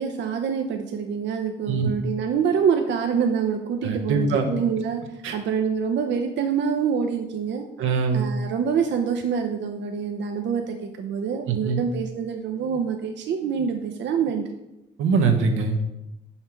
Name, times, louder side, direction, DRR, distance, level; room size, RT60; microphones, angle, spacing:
voice 1, 0.0-7.7 8.1-14.6, right 6 dB, 65° right, 4 dB, 0.6 m, -26 dB
voice 2, 3.8-4.5 5.2-5.3 7.8-8.2 11.5-11.8 15.0-15.8, right 5 dB, 85° right, 5 dB, 1.0 m, -22 dB
5.7 x 5.5 x 4.5 m, 0.92 s
cardioid pair, 90°, 20 cm